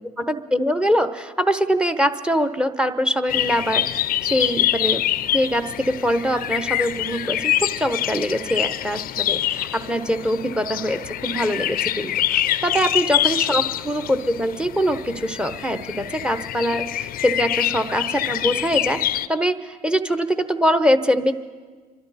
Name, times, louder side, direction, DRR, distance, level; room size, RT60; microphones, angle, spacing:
voice 1, 0.2-5.0 5.3-21.3, equal, 5° right, 11 dB, 0.9 m, -23 dB
sound 1, 3.3-19.3, left 12 dB, 55° left, 0.5 m, -25 dB
26.5 x 12.5 x 4.2 m, 1.5 s
supercardioid pair, 75°, 18 cm